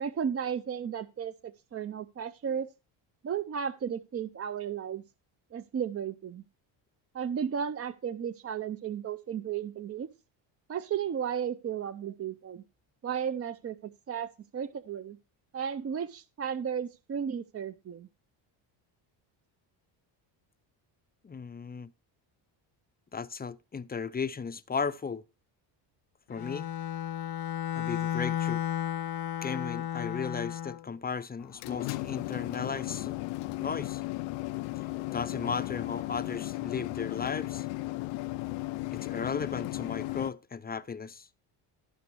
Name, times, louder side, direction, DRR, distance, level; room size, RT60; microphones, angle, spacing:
voice 1, 0.0-2.7 3.2-5.0 5.5-6.4 7.1-10.1 10.7-12.6 13.0-15.2 15.5-18.1, right 8 dB, 30° right, 0.5 m, -34 dB
voice 2, 21.2-21.9 23.1-25.2 26.3-26.7 27.7-28.6 29.4-33.2 33.6-34.0 34.7-34.9 35.1-37.7 38.9-41.3, left 5 dB, 20° left, 0.5 m, -35 dB
Bowed string instrument, 26.3-30.8, left 10 dB, 50° left, 0.7 m, -33 dB
sound 1, 31.4-40.3, left 19 dB, 90° left, 0.6 m, -35 dB
14.5 x 5.2 x 4.7 m
cardioid pair, 90°, 50 cm